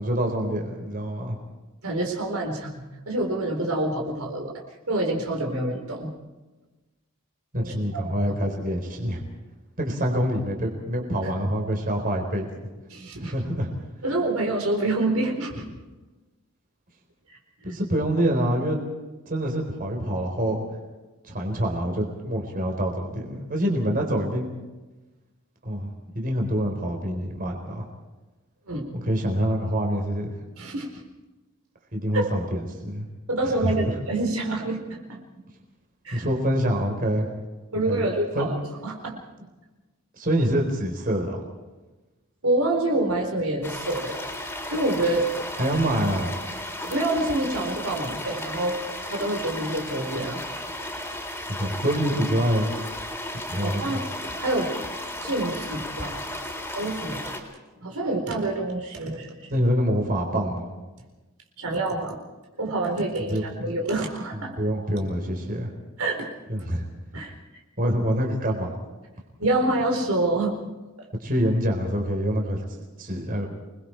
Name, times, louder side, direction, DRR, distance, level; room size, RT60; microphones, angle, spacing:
voice 1, 0.0-1.4 7.5-9.2 9.8-12.5 13.2-13.7 17.6-18.8 19.3-20.6 21.2-24.5 25.6-25.9 26.1-27.8 29.0-30.3 31.9-33.1 33.4-33.8 36.1-37.3 37.9-38.1 38.3-38.5 40.2-41.4 45.6-46.3 51.5-52.7 53.5-53.9 59.5-60.7 63.2-63.7 64.3-65.7 66.5-66.9 67.8-68.8 71.2-72.6 73.0-73.5, equal, 40° right, 1 dB, 4.1 m, -26 dB
voice 2, 1.8-4.5 4.9-6.1 7.5-8.2 12.9-13.3 14.0-15.8 28.7-28.8 30.6-31.0 32.1-32.3 33.3-35.2 36.0-36.3 37.7-38.6 38.8-39.2 42.4-44.2 44.7-45.3 46.8-48.8 49.1-50.4 53.6-54.0 54.4-54.7 55.2-56.3 56.7-57.3 57.8-59.5 61.6-62.2 62.6-64.8 66.0-66.3 67.1-67.3 69.4-70.6, right 2 dB, 70° right, 1 dB, 4.3 m, -27 dB
sound 1, 43.6-57.4, left 1 dB, 10° left, 3.8 m, -34 dB
28.0 x 21.5 x 4.6 m, 1.2 s
head